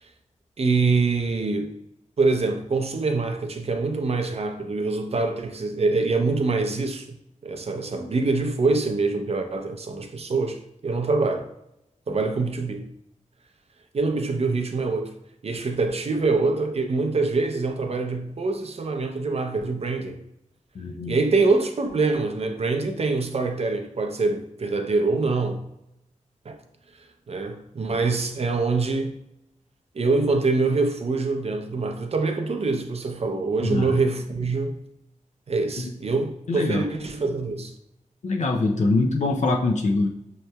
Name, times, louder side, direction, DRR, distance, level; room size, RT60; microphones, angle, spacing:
voice 1, 0.6-1.8 2.2-11.5 12.1-12.9 13.9-15.1 15.4-20.2 21.1-25.7 26.5-26.6 27.3-29.1 29.9-34.8 35.5-37.7, right 3 dB, 50° right, 0.5 m, -25 dB
voice 2, 20.8-21.2 33.6-34.0 35.8-35.9 36.5-36.8 38.2-40.1, left 3 dB, 65° left, 0.5 m, -23 dB
6.4 x 2.8 x 2.2 m
wide cardioid pair, 115°, 13 cm